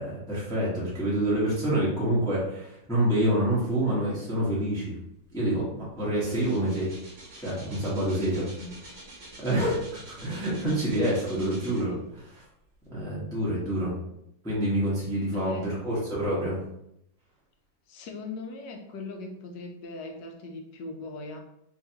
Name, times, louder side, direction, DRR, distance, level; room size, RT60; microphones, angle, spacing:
voice 1, 0.0-5.0 5.3-6.9 7.4-8.5 9.4-11.9 12.9-14.0 14.4-16.6, right 1 dB, 5° left, -7 dB, 0.6 m, -27 dB
sound 1, 5.9-12.2 12.7-12.8, right 2 dB, 60° right, 0.5 m, -47 dB
voice 2, 11.3-12.1 15.3-15.8 17.9-21.4, left 3 dB, 75° left, 3 dB, 1.1 m, -39 dB
3.0 x 2.7 x 2.8 m, 0.77 s
omnidirectional pair, 2.1 m